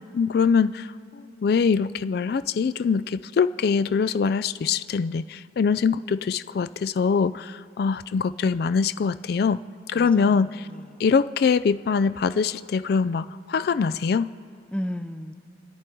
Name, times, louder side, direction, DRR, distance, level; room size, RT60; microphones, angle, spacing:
voice 1, 0.1-9.6 9.9-10.7 11.0-14.3, left 5 dB, 55° left, 14 dB, 0.3 m, -23 dB
voice 2, 9.9-11.0 14.7-15.3, equal, 5° left, 8 dB, 0.6 m, -34 dB
29.5 x 10.5 x 4.6 m, 2.6 s
head